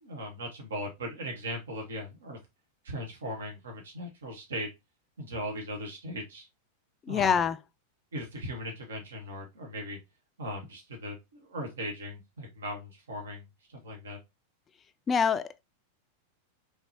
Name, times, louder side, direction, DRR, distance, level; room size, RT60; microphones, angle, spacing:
voice 1, 0.0-2.4 2.8-4.7 5.2-6.5 7.1-7.3 8.1-10.0 10.4-13.4 13.7-14.2, equal, 65° right, 1.0 m, -38 dB
voice 2, 7.1-7.6 15.1-15.6, left 6 dB, 20° left, 0.3 m, -25 dB
4.1 x 3.2 x 2.8 m
figure-of-eight pair, 90°, 0 cm